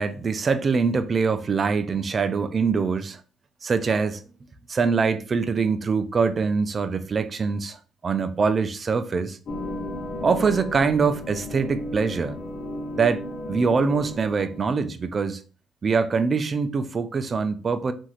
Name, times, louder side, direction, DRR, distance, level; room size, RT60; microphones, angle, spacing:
voice 1, 0.0-3.2 3.6-4.2 4.7-9.4 10.2-12.4 12.9-13.2 13.5-15.4 15.8-17.9, right 5 dB, 40° right, 0.4 m, -24 dB
sound 1, 9.5-14.6, left 1 dB, 60° left, 0.6 m, -34 dB
3.0 x 2.6 x 2.4 m
cardioid pair, 85°, 0 cm